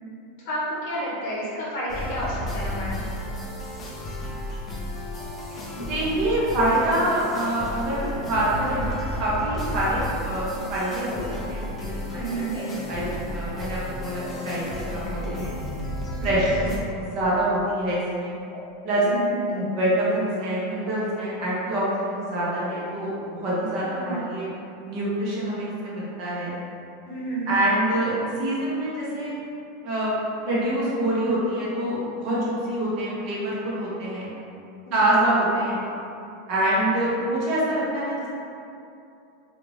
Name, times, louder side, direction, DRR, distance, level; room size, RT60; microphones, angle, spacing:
voice 1, 0.4-3.1 12.1-12.6 16.1-16.7 19.0-19.5 23.8-24.3 27.1-27.6 34.9-35.3, right 1 dB, 50° left, -7 dB, 0.8 m, -31 dB
sound 1, 1.9-16.8, left 1 dB, 15° left, 0.4 m, -33 dB
sound 2, 5.3-16.4 16.6-18.2 18.5-18.6 18.9-20.9 21.2-21.8 22.1-23.5 23.9-24.0, left 2 dB, 85° left, 0.7 m, -42 dB
voice 2, 5.8-11.2 11.5-12.2 12.5-15.5 16.2-16.7 17.0-18.4 18.8-19.0 19.5-24.5 24.8-26.5 27.5-29.4 29.8-30.1 30.4-34.3 34.9-35.8 36.5-38.3, right 1 dB, 40° right, -7 dB, 1.0 m, -25 dB
3.4 x 2.5 x 3.0 m, 2.7 s
supercardioid pair, 165°, 0 cm